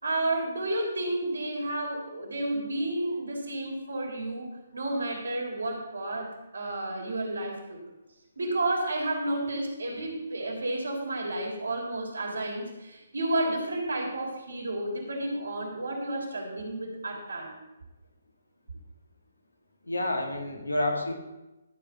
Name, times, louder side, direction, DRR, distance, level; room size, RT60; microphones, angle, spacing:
voice 1, 0.0-4.5 4.7-7.8 8.4-17.6, right 1 dB, 75° right, 0 dB, 3.6 m, -31 dB
voice 2, 19.8-21.1, left 1 dB, 85° left, 3 dB, 2.2 m, -29 dB
13.0 x 5.0 x 7.0 m, 1.0 s
figure-of-eight pair, 135°, 0 cm